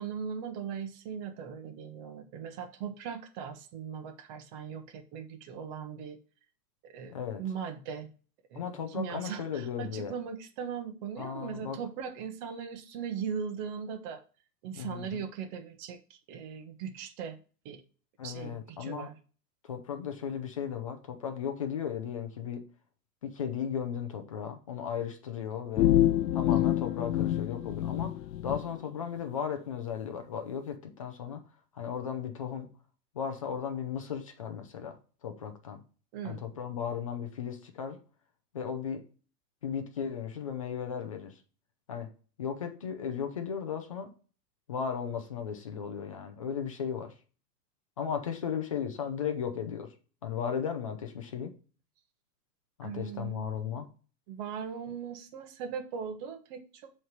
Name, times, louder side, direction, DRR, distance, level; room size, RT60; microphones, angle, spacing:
voice 1, 0.0-6.2 6.8-8.1 8.5-14.2 14.6-17.4 17.6-17.8 18.2-19.1 36.1-36.5 52.8-53.6 54.3-56.9, right 7 dB, 30° right, 0.9 m, -39 dB
voice 2, 7.1-7.4 8.6-10.1 11.2-11.8 14.7-15.2 18.2-19.1 19.6-22.6 23.2-25.9 26.3-28.1 28.4-31.4 31.7-32.7 33.1-35.0 35.2-35.8 36.2-38.0 38.5-39.0 39.6-41.3 41.9-42.1 42.4-44.1 44.7-47.1 48.0-49.9 50.2-51.5 52.8-53.9, left 7 dB, 25° left, 0.4 m, -36 dB
sound 1, 25.8-28.6, left 13 dB, 80° left, 0.6 m, -26 dB
7.6 x 3.3 x 5.1 m
hypercardioid pair, 145°, 50 cm